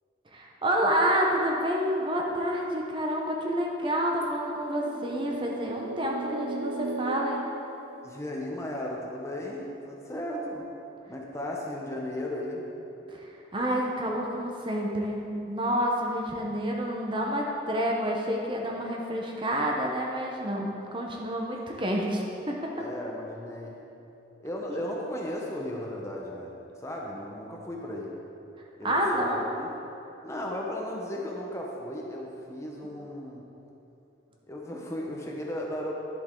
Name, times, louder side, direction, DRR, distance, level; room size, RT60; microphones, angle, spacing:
voice 1, 0.3-7.4 13.1-22.7 28.8-29.5, equal, 25° right, -1 dB, 0.8 m, -29 dB
sound 1, 4.7-8.5, right 3 dB, 55° right, 0.4 m, -36 dB
voice 2, 8.0-10.7 11.1-12.6 22.8-23.8 24.4-28.2 28.8-29.7 30.2-33.5 34.5-35.9, left 1 dB, 15° left, -2 dB, 0.8 m, -35 dB
11.0 x 7.6 x 3.8 m, 3.0 s
head